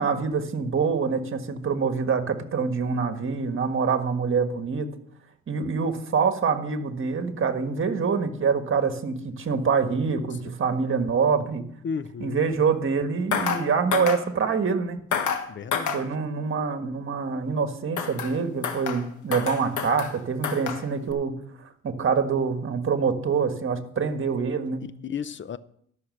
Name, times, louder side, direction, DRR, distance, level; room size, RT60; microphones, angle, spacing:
voice 1, 0.0-4.9 5.5-11.6 12.2-15.0 15.9-21.3 21.8-24.9, right 5 dB, 45° right, 1.6 m, -25 dB
voice 2, 11.8-12.6 15.5-16.1 25.0-25.6, left 6 dB, 40° left, 0.7 m, -33 dB
sound 1, 13.3-13.6 13.9-14.2 15.1-15.4 15.7-16.0 18.0-18.4 18.6-19.1 19.3-20.2 20.4-20.8 21.1-21.2, left 7 dB, 75° left, 1.4 m, -28 dB
12.5 x 6.4 x 6.4 m
cardioid pair, 90°, 30 cm